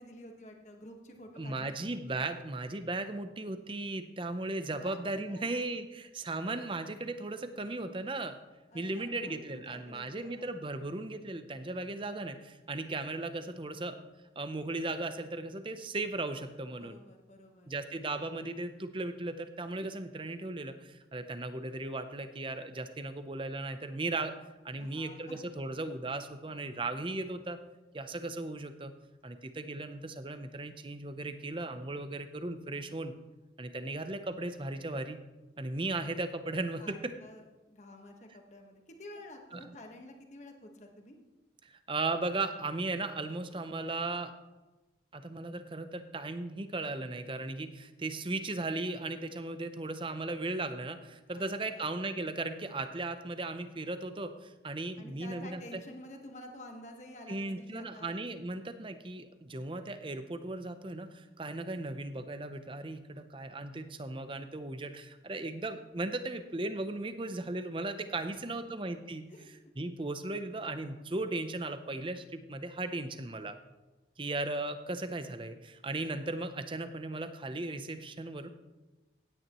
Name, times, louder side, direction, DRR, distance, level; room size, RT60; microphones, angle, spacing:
voice 1, 0.0-1.9 4.8-5.0 5.3-5.7 8.7-10.5 16.8-17.8 24.8-25.5 36.8-41.2 51.3-51.9 55.0-58.1 68.3-68.9 69.3-69.5, left 1 dB, 40° left, 3 dB, 1.4 m, -50 dB
voice 2, 1.4-8.4 8.7-14.0 14.4-17.0 17.7-24.3 24.6-27.6 27.9-28.9 29.2-33.1 33.6-35.2 35.6-37.1 39.5-39.8 41.6-44.3 45.1-55.6 57.3-69.2 69.8-73.6 74.2-78.5, right 2 dB, 25° right, 9 dB, 0.6 m, -37 dB
16.5 x 9.7 x 3.1 m, 1.1 s
head